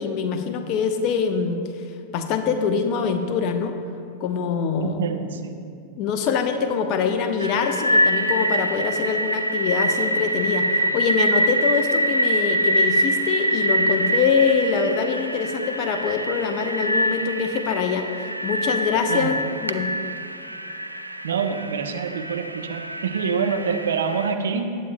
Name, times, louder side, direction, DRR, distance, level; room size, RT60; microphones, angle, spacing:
voice 1, 0.0-1.6 2.1-3.7 4.2-5.0 6.0-18.0 18.4-19.3 19.6-19.9, left 6 dB, 40° left, 7 dB, 0.8 m, -24 dB
voice 2, 4.8-5.6 19.1-19.3 21.2-24.8, right 6 dB, 65° right, 6 dB, 0.7 m, -26 dB
sound 1, 7.4-24.3, right 1 dB, 85° right, 0.4 m, -24 dB
19.5 x 8.4 x 2.2 m, 2.4 s
figure-of-eight pair, 90°, 0 cm